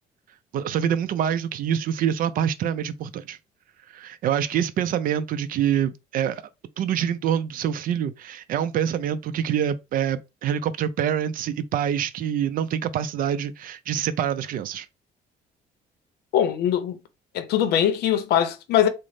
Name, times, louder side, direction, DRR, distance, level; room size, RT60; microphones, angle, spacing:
voice 1, 0.5-3.4 3.9-6.4 6.8-14.9, right 9 dB, 55° right, 0.4 m, -26 dB
voice 2, 16.3-17.0 17.3-18.9, left 10 dB, 75° left, 0.6 m, -21 dB
3.7 x 2.0 x 3.3 m
cardioid pair, 110°, 17 cm